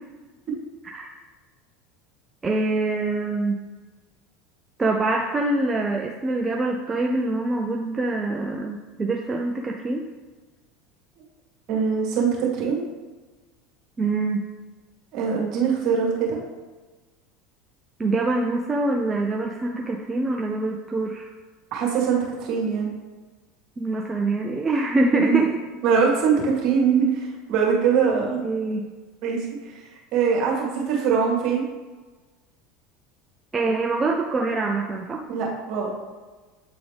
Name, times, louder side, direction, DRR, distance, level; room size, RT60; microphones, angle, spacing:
voice 1, 2.4-3.6 4.8-10.1 14.0-14.5 18.0-21.3 23.8-25.5 28.0-28.9 33.5-35.2, right 2 dB, 25° right, 1 dB, 0.6 m, -25 dB
voice 2, 11.7-12.8 15.1-16.4 21.7-22.9 25.1-25.4 25.8-28.4 29.2-29.5 30.1-31.6 35.3-35.9, right 6 dB, 55° right, -2 dB, 2.0 m, -22 dB
8.3 x 3.9 x 3.4 m, 1.3 s
hypercardioid pair, 80°, 0 cm